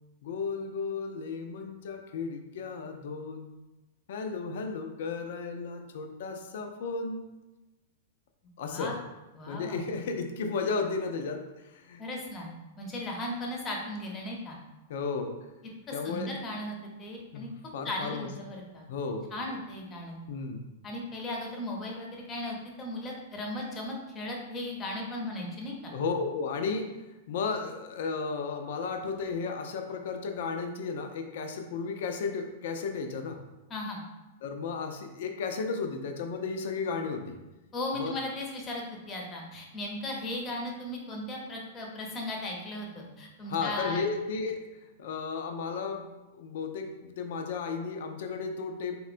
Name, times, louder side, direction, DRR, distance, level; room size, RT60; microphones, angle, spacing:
voice 1, 0.2-3.5 4.1-7.2 8.6-8.9 9.5-11.4 11.7-12.0 14.9-15.3 15.9-16.3 17.3-17.5 17.7-18.3 18.9-19.3 20.3-20.6 25.9-26.8 27.3-33.4 34.4-37.4 37.9-38.1 43.5-44.6 45.0-46.1 46.3-49.0, left 4 dB, 65° left, 5 dB, 0.3 m, -34 dB
voice 2, 8.6-9.0 9.3-9.9 12.0-12.5 12.8-14.6 15.9-17.5 17.8-18.8 19.3-20.2 20.8-25.9 33.7-34.0 37.7-44.0, left 1 dB, 25° left, 0 dB, 0.6 m, -37 dB
3.5 x 2.1 x 2.5 m, 1.0 s
hypercardioid pair, 115°, 0 cm